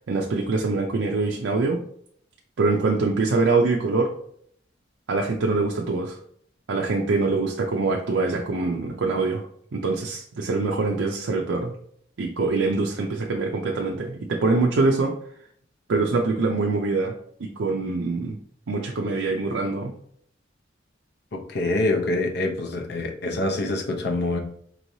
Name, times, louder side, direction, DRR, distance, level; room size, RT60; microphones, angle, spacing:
voice 1, 0.1-1.8 2.6-4.1 5.1-6.2 6.7-9.5 9.7-11.7 12.2-15.1 15.9-18.4 18.7-19.9, right 3 dB, 80° right, 1 dB, 0.5 m, -24 dB
voice 2, 21.3-24.4, left 2 dB, 60° left, 3 dB, 0.7 m, -25 dB
4.6 x 3.1 x 2.7 m, 0.66 s
head